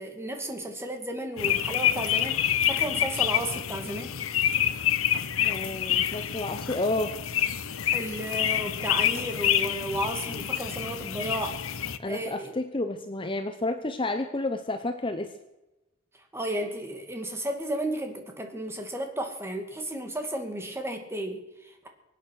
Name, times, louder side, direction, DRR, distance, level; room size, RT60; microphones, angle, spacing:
voice 1, 0.0-4.2 7.9-11.6 12.0-12.5 16.3-21.9, right 1 dB, 10° right, 4 dB, 2.2 m, -33 dB
sound 1, 1.4-12.0, left 10 dB, 75° left, 0.8 m, -27 dB
voice 2, 5.4-7.2 12.0-15.3, left 2 dB, 25° left, 8 dB, 0.9 m, -30 dB
24.0 x 9.3 x 6.5 m, 1.0 s
head